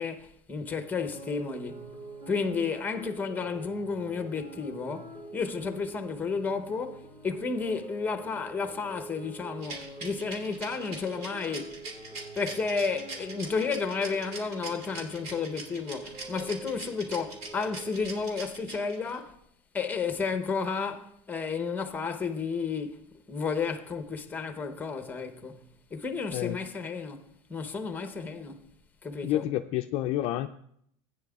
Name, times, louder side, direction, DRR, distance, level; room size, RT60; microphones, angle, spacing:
voice 1, 0.0-2.0 2.3-11.8 12.4-19.4 19.7-28.7 29.0-29.5, left 5 dB, 10° left, 0.8 m, -32 dB
sound 1, 1.1-18.3, right 2 dB, 30° right, 4.1 m, -45 dB
Rattle, 9.6-19.2, right 3 dB, 50° right, 2.7 m, -41 dB
voice 2, 29.2-30.5, left 13 dB, 45° left, 0.4 m, -29 dB
15.5 x 9.3 x 2.4 m
supercardioid pair, 145°, 15 cm